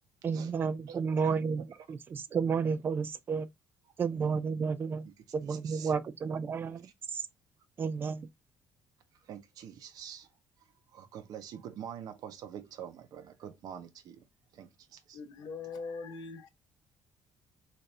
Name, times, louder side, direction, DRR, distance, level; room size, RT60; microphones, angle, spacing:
voice 1, 0.2-3.5 4.0-5.1 5.3-6.9 7.1-7.2 7.8-8.3, right 5 dB, 30° right, 0.4 m, -31 dB
voice 2, 0.9-1.9 5.0-6.0 6.8-6.9 9.2-10.3 10.9-14.2 14.5-15.2, right 9 dB, 55° right, 0.8 m, -46 dB
voice 3, 15.1-16.5, left 4 dB, 60° left, 0.8 m, -41 dB
4.1 x 2.6 x 3.2 m
cardioid pair, 175°, 8 cm